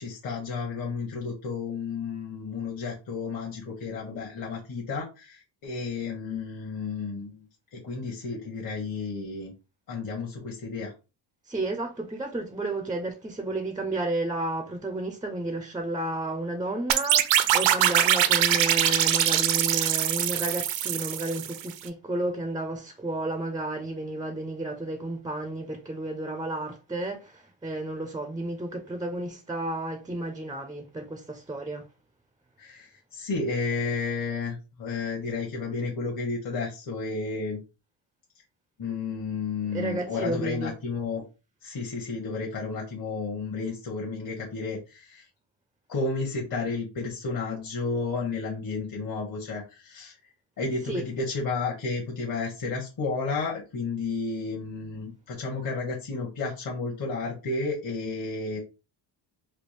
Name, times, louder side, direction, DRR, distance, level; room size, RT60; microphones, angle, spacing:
voice 1, 0.0-7.4 7.7-9.5 9.9-10.9 32.6-37.6 38.8-41.2 41.6-45.3 45.9-58.6, left 4 dB, 45° left, 0.9 m, -32 dB
voice 2, 11.5-31.9 39.7-40.7 50.9-51.0, right 2 dB, 10° right, 0.3 m, -32 dB
sound 1, 16.9-21.7, right 11 dB, 75° right, 0.5 m, -23 dB
3.4 x 2.3 x 3.1 m
cardioid pair, 145°, 46 cm